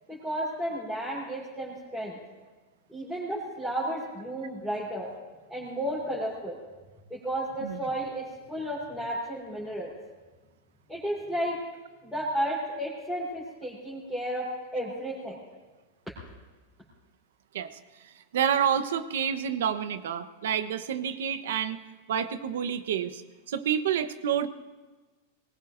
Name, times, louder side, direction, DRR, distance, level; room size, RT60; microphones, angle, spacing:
voice 1, 0.1-2.2 2.9-5.1 5.5-6.6 7.1-9.9 10.9-11.6 12.0-14.5 14.7-15.4, right 1 dB, ahead, -9 dB, 3.9 m, -33 dB
voice 2, 18.3-21.8 22.1-23.2 23.5-24.5, right 8 dB, 80° right, 11 dB, 1.0 m, -28 dB
23.0 x 20.5 x 2.6 m, 1.3 s
supercardioid pair, 170°, 0 cm